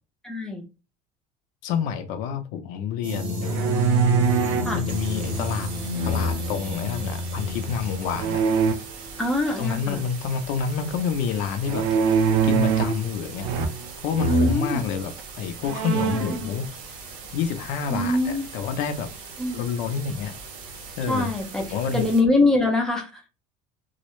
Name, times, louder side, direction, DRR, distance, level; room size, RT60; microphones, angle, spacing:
voice 1, 0.2-0.6 4.6-4.8 9.2-10.0 14.3-14.8 16.1-16.5 17.9-18.5 19.4-19.6 21.1-21.6 21.9-23.2, left 2 dB, 5° left, 0.5 m, -23 dB
voice 2, 1.6-3.7 4.7-5.7 6.0-8.4 9.5-11.9 12.4-13.5 14.0-16.7 17.3-19.1 19.5-20.4 21.0-21.3 21.7-22.1, left 7 dB, 65° left, 0.5 m, -28 dB
sound 1, 3.0-8.2, left 1 dB, 30° right, 0.7 m, -29 dB
sound 2, 3.4-4.8 5.9-6.6 8.1-8.7 11.7-13.0 13.4-13.9 14.2-14.6 15.2-15.3 15.6-16.4, right 5 dB, 70° right, 0.4 m, -23 dB
sound 3, 4.9-22.2, right 4 dB, 85° right, 0.8 m, -41 dB
2.3 x 2.1 x 2.9 m
cardioid pair, 170°, 15 cm